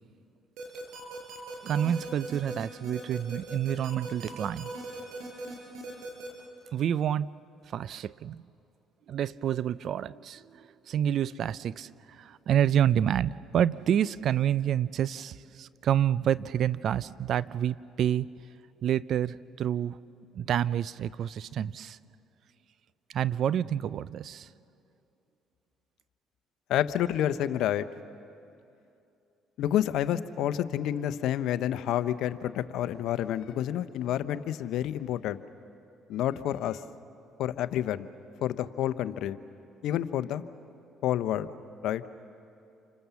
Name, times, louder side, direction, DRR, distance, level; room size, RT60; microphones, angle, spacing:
sound 1, 0.6-6.3, right 2 dB, 80° right, 6.2 m, -39 dB
voice 1, 1.6-4.7 6.7-7.3 7.7-8.5 9.1-18.3 18.8-20.0 20.3-22.0 23.1-24.5, right 10 dB, 60° right, 19 dB, 0.5 m, -28 dB
voice 2, 26.7-27.9 29.6-35.4 36.1-36.8 37.4-38.1 38.4-39.4 39.8-40.4 41.0-41.5 41.8-42.0, left 11 dB, 70° left, 13 dB, 0.9 m, -29 dB
29.0 x 26.0 x 7.1 m, 2.7 s
supercardioid pair, 75°, 0 cm